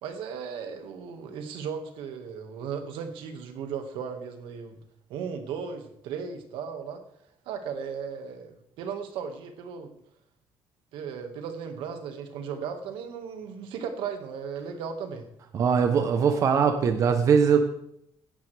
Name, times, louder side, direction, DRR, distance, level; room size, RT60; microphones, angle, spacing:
voice 1, 0.0-4.8 5.1-7.0 7.5-9.9 10.9-15.3, right 6 dB, 80° right, 6 dB, 1.8 m, -36 dB
voice 2, 15.5-17.7, right 6 dB, 40° right, 7 dB, 0.9 m, -21 dB
17.0 x 11.0 x 3.4 m, 0.74 s
cardioid pair, 175°, 9 cm